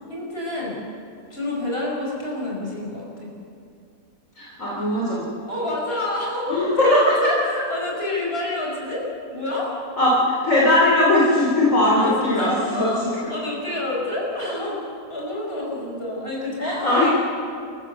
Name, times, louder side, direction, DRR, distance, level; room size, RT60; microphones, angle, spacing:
voice 1, 0.1-0.8 1.3-3.3 5.5-9.1 9.3-9.7 12.0-17.2, left 1 dB, 40° left, -3 dB, 5.9 m, -28 dB
voice 2, 4.4-5.3 6.5-7.3 10.0-13.1 16.6-17.2, left 1 dB, 60° left, -5 dB, 4.0 m, -19 dB
29.0 x 15.0 x 6.7 m, 2.5 s
omnidirectional pair, 1.6 m